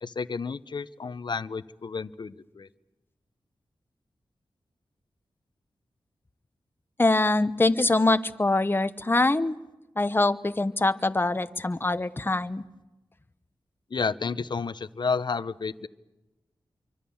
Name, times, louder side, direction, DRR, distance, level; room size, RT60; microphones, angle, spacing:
voice 1, 0.0-2.7 13.9-15.9, left 5 dB, 55° left, 14 dB, 0.9 m, -31 dB
voice 2, 7.0-9.6 10.0-12.6, left 2 dB, 25° left, 12 dB, 1.0 m, -24 dB
27.0 x 24.5 x 7.2 m, 1.1 s
wide cardioid pair, 75°, 9 cm